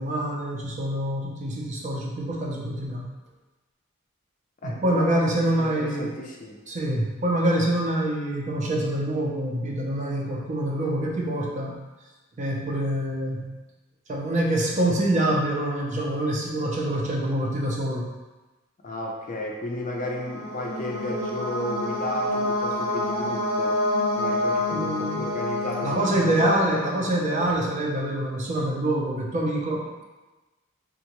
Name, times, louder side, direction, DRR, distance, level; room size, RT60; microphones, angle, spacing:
voice 1, 0.0-3.1 4.6-6.1 6.7-11.8 12.4-13.6 14.1-18.1 24.7-25.2 25.8-30.0, right 1 dB, 35° right, -2 dB, 0.5 m, -26 dB
voice 2, 4.6-6.6 6.9-7.0 18.8-23.8 24.2-26.8, left 1 dB, 40° left, -1 dB, 0.4 m, -33 dB
sound 1, 19.8-27.5, left 1 dB, 85° right, 1.2 m, -28 dB
3.6 x 2.2 x 2.9 m, 1.2 s
head